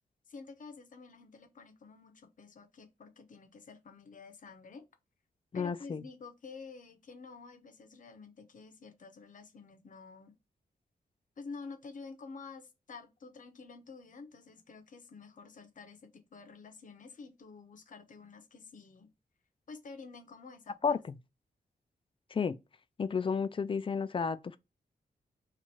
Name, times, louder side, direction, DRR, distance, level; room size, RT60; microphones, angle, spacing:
voice 1, 0.3-4.8 5.5-10.3 11.4-19.1 19.7-21.0, left 4 dB, 55° left, 0.8 m, -50 dB
voice 2, 5.5-6.0 20.8-21.2 22.3-22.6 23.0-24.6, left 5 dB, 35° left, 0.4 m, -32 dB
3.1 x 2.4 x 4.2 m
wide cardioid pair, 100°, 16 cm